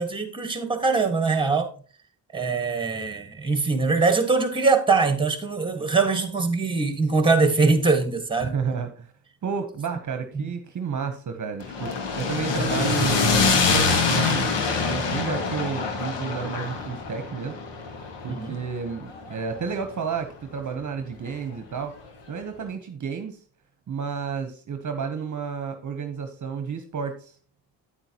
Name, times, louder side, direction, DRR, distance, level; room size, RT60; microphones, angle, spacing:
voice 1, 0.0-1.7 2.3-8.5 10.3-10.5 18.3-18.5, right 4 dB, 10° right, 1.7 m, -22 dB
voice 2, 8.4-9.1 9.4-14.5 14.8-17.6 18.2-22.0 22.3-23.4 23.9-27.4, right 6 dB, 45° right, 1.0 m, -31 dB
sound 1, 11.6-19.8, left 4 dB, 70° left, 1.8 m, -25 dB
9.0 x 8.8 x 2.9 m
cardioid pair, 90°, 44 cm